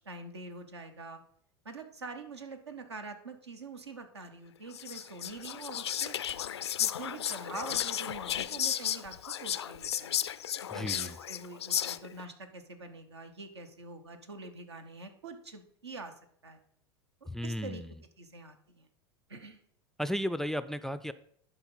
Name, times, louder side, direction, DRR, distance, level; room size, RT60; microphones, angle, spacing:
voice 1, 0.0-1.2 1.6-6.1 6.8-10.2 10.7-16.1 16.4-16.6 17.4-17.8 18.2-18.9 19.3-19.6, right 3 dB, 80° right, 7 dB, 1.1 m, -45 dB
Whispering, 4.7-12.2, left 10 dB, 80° left, 0.4 m, -34 dB
voice 2, 10.7-11.2 17.3-17.9 20.0-21.1, equal, 5° left, 14 dB, 0.3 m, -34 dB
11.0 x 4.2 x 5.5 m, 0.66 s
figure-of-eight pair, 85°, 14 cm